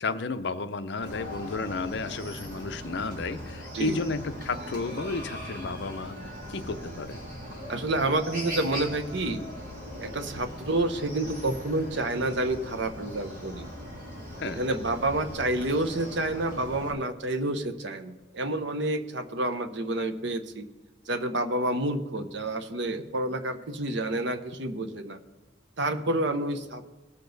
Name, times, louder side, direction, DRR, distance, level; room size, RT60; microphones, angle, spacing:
voice 1, 0.0-7.2 14.4-14.6, left 3 dB, 55° left, 11 dB, 0.6 m, -32 dB
Chicken rooster, 1.0-16.9, equal, 40° right, 3.1 m, -40 dB
voice 2, 7.7-9.4 10.0-13.7 14.4-20.7 21.1-25.2 25.8-26.9, right 2 dB, 55° right, 9 dB, 0.8 m, -29 dB
18.5 x 6.8 x 4.0 m, 1.2 s
head